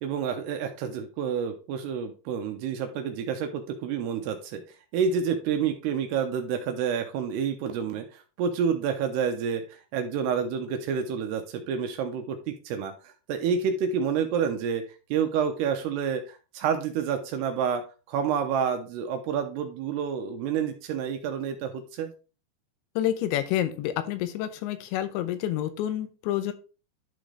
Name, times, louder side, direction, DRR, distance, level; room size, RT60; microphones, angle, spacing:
voice 1, 0.0-4.6 4.9-14.8 15.1-17.8 18.1-22.1, right 7 dB, 80° right, 6 dB, 2.6 m, -29 dB
voice 2, 23.0-26.5, left 12 dB, 85° left, 10 dB, 3.0 m, -28 dB
11.5 x 3.8 x 3.2 m, 0.33 s
omnidirectional pair, 5.2 m